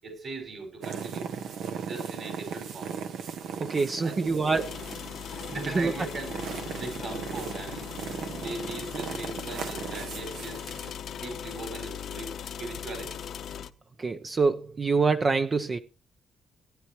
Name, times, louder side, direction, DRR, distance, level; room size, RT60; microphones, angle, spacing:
voice 1, 0.0-1.3 1.8-2.9 3.8-4.5 5.2-5.3 5.5-7.9 8.3-10.6 11.1-13.2, right 3 dB, 50° right, 5.6 m, -39 dB
sound 1, 0.8-10.9, right 6 dB, 75° right, 1.4 m, -38 dB
voice 2, 3.6-4.6 5.8-5.9 14.0-15.8, right 4 dB, 35° right, 0.7 m, -25 dB
sound 2, 4.5-13.7, left 8 dB, 65° left, 1.0 m, -39 dB
18.0 x 9.8 x 3.1 m
cardioid pair, 90°, 0 cm